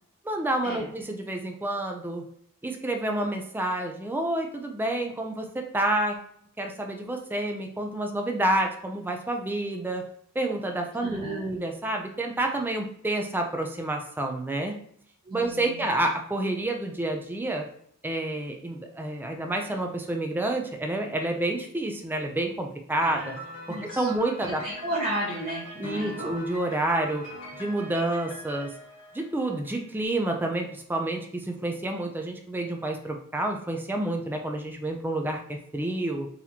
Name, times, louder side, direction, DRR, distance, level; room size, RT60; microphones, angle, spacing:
voice 1, 0.2-2.2 2.6-6.2 6.6-10.0 10.4-14.7 15.3-17.7 18.0-23.4 23.7-24.6 25.8-27.2 27.5-28.7 29.1-36.3, right 1 dB, 10° right, 2 dB, 0.3 m, -29 dB
voice 2, 11.0-11.5 15.3-15.8 23.0-23.3 23.7-24.1 24.5-26.4, right 1 dB, 30° right, -6 dB, 0.9 m, -34 dB
Piano, 23.0-29.8, equal, 60° left, 1.4 m, -42 dB
4.0 x 2.9 x 2.7 m, 0.65 s
head